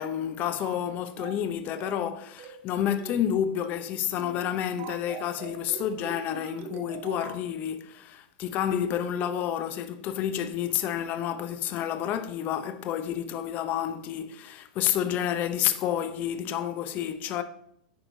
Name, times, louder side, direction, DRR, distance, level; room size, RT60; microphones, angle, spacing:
voice 1, 0.0-17.4, left 10 dB, 40° left, 0.7 m, -29 dB
sound 1, 0.6-0.9 1.2-1.5 1.8-2.1 2.4-2.7 3.0-3.3 3.6-3.9 4.2-4.4 4.8-7.4, right 8 dB, 45° right, 0.7 m, -42 dB
10.5 x 4.5 x 3.9 m
hypercardioid pair, 110°, 5 cm